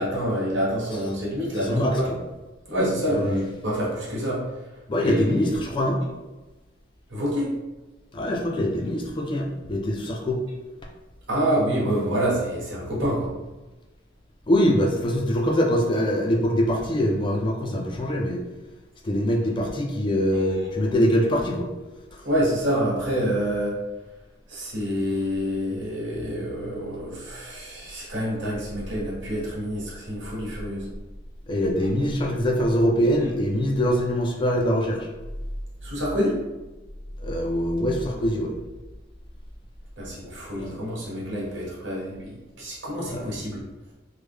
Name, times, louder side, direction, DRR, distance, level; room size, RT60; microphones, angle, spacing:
voice 1, 0.0-2.1 2.7-4.5 5.0-5.6 7.1-7.5 11.3-13.3 22.2-23.8 24.5-30.9 35.8-36.4 40.0-43.6, equal, 75° right, -5 dB, 1.2 m, -27 dB
voice 2, 1.6-2.2 3.1-3.4 4.9-6.0 8.1-10.4 14.5-18.4 19.0-21.7 31.5-35.1 37.2-38.5 40.5-40.8 43.1-43.3, equal, 25° left, 1 dB, 0.4 m, -23 dB
3.2 x 2.1 x 3.5 m, 1.1 s
head